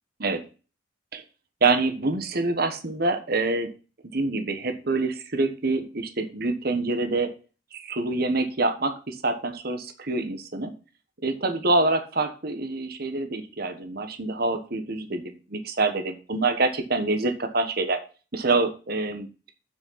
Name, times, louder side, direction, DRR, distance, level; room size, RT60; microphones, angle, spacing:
voice 1, 1.6-3.7 4.1-7.3 7.7-10.7 11.2-18.0 18.3-19.3, right 3 dB, 50° right, 7 dB, 1.3 m, -26 dB
7.7 x 6.3 x 5.7 m, 0.34 s
head